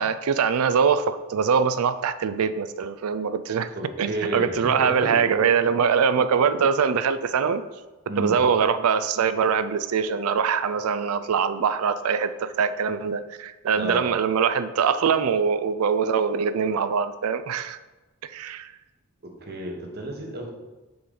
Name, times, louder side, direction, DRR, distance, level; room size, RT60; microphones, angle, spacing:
voice 1, 0.0-3.7 4.0-7.6 8.2-17.8 18.2-18.7, right 6 dB, 90° right, 12 dB, 0.4 m, -23 dB
voice 2, 3.7-5.2 8.1-8.4 13.8-14.0 19.2-20.5, right 1 dB, 50° right, 1 dB, 1.1 m, -31 dB
6.9 x 3.8 x 5.1 m, 1.1 s
head